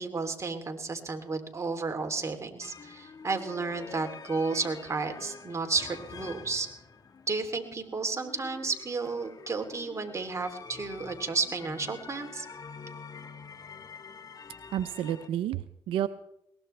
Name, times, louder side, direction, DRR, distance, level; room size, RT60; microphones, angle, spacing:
voice 1, 0.0-6.7 7.3-12.4, right 4 dB, 35° right, 4 dB, 3.1 m, -32 dB
sound 1, 2.6-15.3, left 5 dB, 45° left, 1.7 m, -46 dB
voice 2, 14.7-16.1, right 11 dB, 85° right, 12 dB, 0.6 m, -30 dB
21.5 x 19.5 x 3.3 m, 0.78 s
cardioid pair, 75°, 9 cm